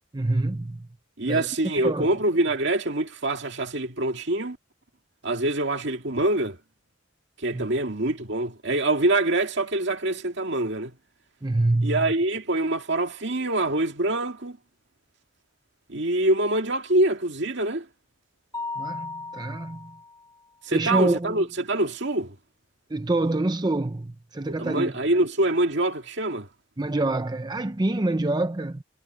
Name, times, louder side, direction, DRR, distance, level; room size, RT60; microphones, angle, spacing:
voice 1, 0.1-0.9 1.3-1.5 1.7-2.1 7.5-7.7 11.4-12.1 18.8-19.9 20.7-21.4 22.9-24.9 26.8-28.8, right 2 dB, 20° right, 0.6 m, -26 dB
voice 2, 1.2-4.6 5.2-6.6 7.4-10.9 11.8-14.6 15.9-17.9 20.6-22.4 24.6-26.5, right 2 dB, 65° right, 2.2 m, -25 dB
Mallet percussion, 18.5-20.3, left 3 dB, 15° left, 4.1 m, -36 dB
head